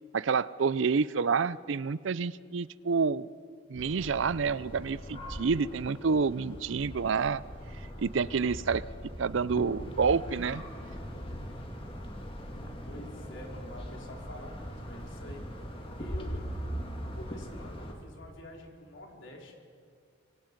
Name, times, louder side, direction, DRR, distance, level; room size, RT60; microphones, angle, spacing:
voice 1, 0.1-3.3 3.7-7.4 8.0-8.8 9.2-10.6, right 5 dB, 70° right, 18 dB, 0.5 m, -28 dB
sound 1, 3.7-14.4, equal, 10° right, 2.8 m, -50 dB
sound 2, 3.8-17.9, equal, 25° left, 2.2 m, -41 dB
voice 2, 12.5-15.5 15.9-16.4 17.0-19.5, left 1 dB, 70° left, 0 dB, 4.0 m, -47 dB
25.5 x 23.5 x 5.3 m, 2.2 s
head